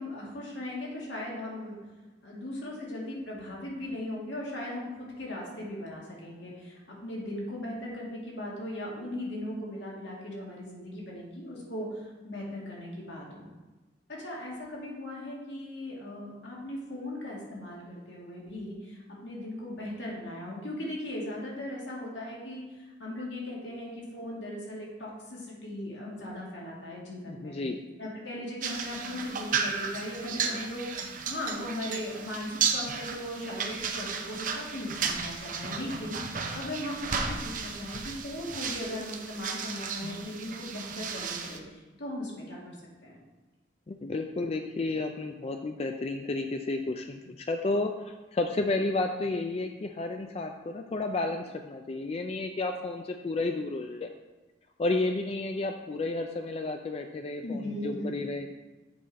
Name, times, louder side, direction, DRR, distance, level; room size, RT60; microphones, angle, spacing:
voice 1, 0.0-1.8 2.2-13.5 14.1-27.5 28.0-42.7 43.0-43.2 57.4-58.2, left 1 dB, 75° left, -4 dB, 2.0 m, -38 dB
voice 2, 27.3-27.8 43.9-54.1 54.8-58.5, left 2 dB, 35° left, 5 dB, 0.3 m, -32 dB
sound 1, 28.6-41.6, right 6 dB, 45° right, 0.6 m, -34 dB
7.8 x 5.0 x 4.1 m, 1.2 s
head